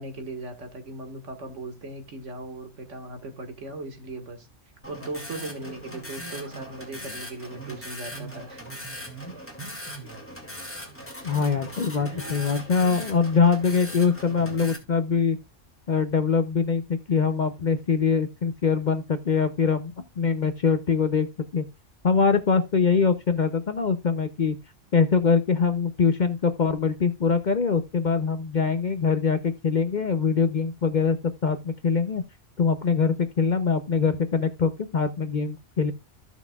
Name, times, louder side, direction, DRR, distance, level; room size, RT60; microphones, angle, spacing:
voice 1, 0.0-4.5 4.9-8.6, right 2 dB, 70° right, 2.0 m, -38 dB
sound 1, 4.8-14.8, equal, 10° left, 2.2 m, -39 dB
voice 2, 11.2-15.4 15.9-21.3 21.5-21.7 22.0-24.6 24.9-31.2 31.4-32.2 32.6-35.9, left 5 dB, 45° left, 0.7 m, -23 dB
15.0 x 6.1 x 2.3 m
omnidirectional pair, 1.3 m